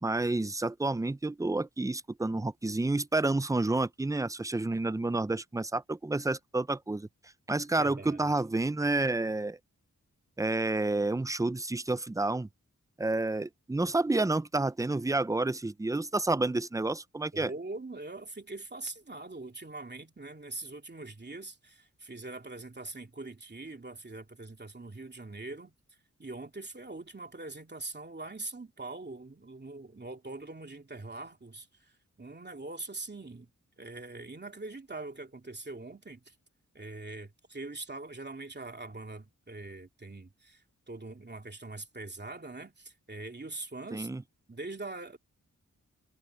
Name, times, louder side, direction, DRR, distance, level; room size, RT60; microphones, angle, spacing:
voice 1, 0.0-7.1 7.5-9.6 10.4-12.5 13.0-17.5 43.9-44.2, right 2 dB, 10° right, 0.4 m, -29 dB
voice 2, 7.8-8.3 17.3-25.7 26.2-33.5 33.8-36.3 36.7-45.2, right 2 dB, 30° right, 2.8 m, -43 dB
wide cardioid pair, 100°, 32 cm